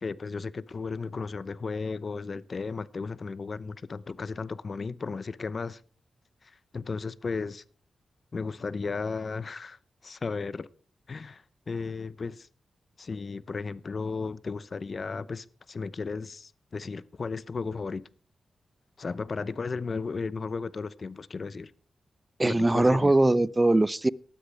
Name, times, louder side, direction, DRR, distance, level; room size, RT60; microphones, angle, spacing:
voice 1, 0.0-5.8 6.4-7.6 8.3-10.7 11.1-12.5 13.0-18.0 19.0-21.7 22.4-23.1, left 4 dB, 50° left, 0.8 m, -35 dB
voice 2, 22.4-24.1, right 2 dB, 25° right, 0.7 m, -21 dB
18.5 x 13.0 x 3.5 m
cardioid pair, 55°, 0 cm